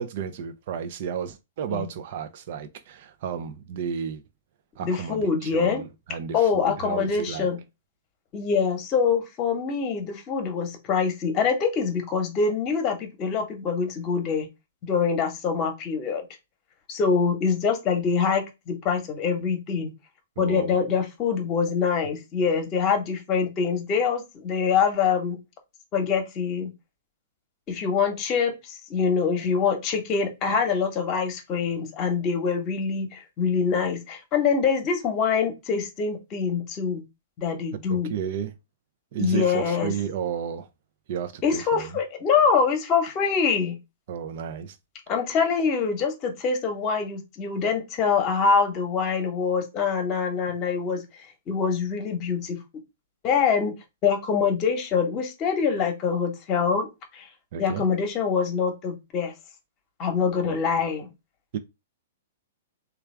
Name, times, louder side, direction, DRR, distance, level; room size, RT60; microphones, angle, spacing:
voice 1, 0.0-4.2 4.8-7.5 20.4-20.7 37.9-38.5 39.1-40.7 41.1-42.0 44.1-44.8 57.5-57.9 60.4-60.6 61.5-61.6, right 8 dB, 55° right, 0.5 m, -32 dB
voice 2, 4.8-5.8 6.3-7.6 8.3-14.5 14.9-16.3 16.9-19.9 20.4-25.4 25.9-26.7 27.7-37.0 37.4-38.1 39.2-39.9 41.4-43.8 45.1-51.0 51.5-52.6 53.2-53.7 54.0-56.9 57.1-57.3 57.6-59.3 60.0-61.1, left 6 dB, 35° left, 1.0 m, -24 dB
3.3 x 2.4 x 3.2 m
hypercardioid pair, 120°, 0 cm